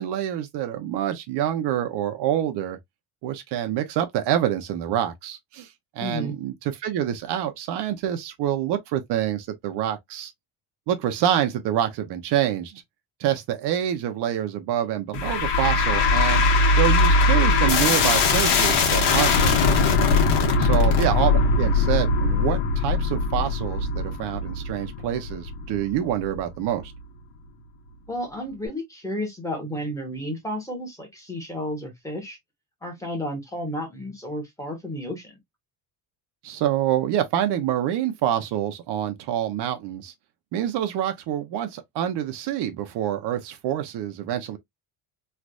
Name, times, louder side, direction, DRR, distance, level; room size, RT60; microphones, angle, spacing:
voice 1, 0.0-2.8 3.2-5.7 6.0-6.5 6.8-10.3 10.9-12.8 13.2-16.4 16.8-19.8 20.6-26.9 36.4-40.1 40.5-44.6, right 11 dB, 70° right, 0.8 m, -26 dB
voice 2, 6.0-6.4 20.8-21.1 28.1-32.4 32.8-35.4, equal, 5° left, 1.1 m, -32 dB
sound 1, 15.1-26.4, left 3 dB, 75° left, 1.3 m, -21 dB
3.3 x 2.5 x 2.4 m
cardioid pair, 145°, 43 cm